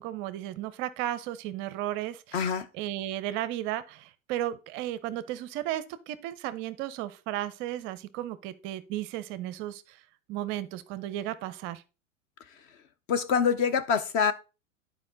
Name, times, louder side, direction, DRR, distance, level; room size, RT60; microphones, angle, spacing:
voice 1, 0.0-10.0 10.3-11.8, right 13 dB, 30° right, 0.5 m, -34 dB
voice 2, 2.3-2.7 13.1-14.3, left 6 dB, 25° left, 0.4 m, -25 dB
10.5 x 4.6 x 3.8 m
figure-of-eight pair, 100°, 40 cm